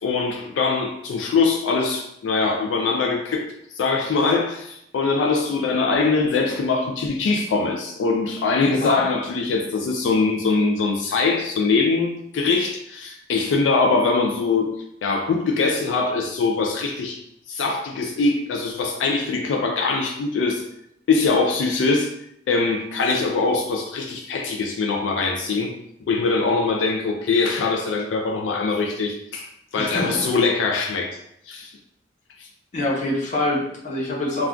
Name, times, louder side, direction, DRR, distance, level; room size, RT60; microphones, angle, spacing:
voice 1, 0.0-14.7 15.0-17.2 17.5-20.6 21.1-22.1 22.5-25.7 26.1-29.5 29.7-31.2 31.5-31.7 32.4-32.5, left 4 dB, 85° left, 2 dB, 0.3 m, -22 dB
voice 2, 8.6-9.0 29.8-30.3 32.7-34.5, left 1 dB, 40° left, -4 dB, 0.8 m, -25 dB
2.3 x 2.2 x 3.6 m, 0.76 s
head